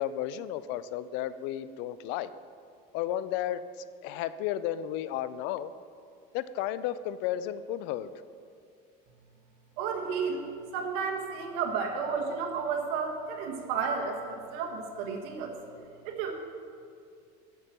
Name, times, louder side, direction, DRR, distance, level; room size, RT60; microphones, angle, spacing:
voice 1, 0.0-2.3 2.9-5.7 6.3-8.1, left 11 dB, 65° left, 14 dB, 0.4 m, -33 dB
voice 2, 9.8-10.4 10.7-15.5 16.0-16.3, right 5 dB, 75° right, 3 dB, 1.5 m, -32 dB
8.0 x 7.6 x 6.7 m, 2.4 s
cardioid pair, 155°, 20 cm